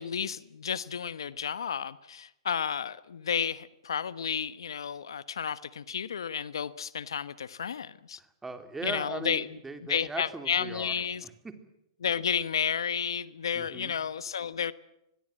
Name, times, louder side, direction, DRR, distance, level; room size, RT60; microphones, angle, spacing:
voice 1, 0.0-8.2 8.8-9.6 9.9-11.2 12.0-14.7, left 7 dB, 85° left, 1.1 m, -32 dB
voice 2, 8.2-11.6 13.5-13.9, right 3 dB, 10° right, 3.4 m, -40 dB
25.0 x 21.0 x 7.6 m
hypercardioid pair, 125°, 2 cm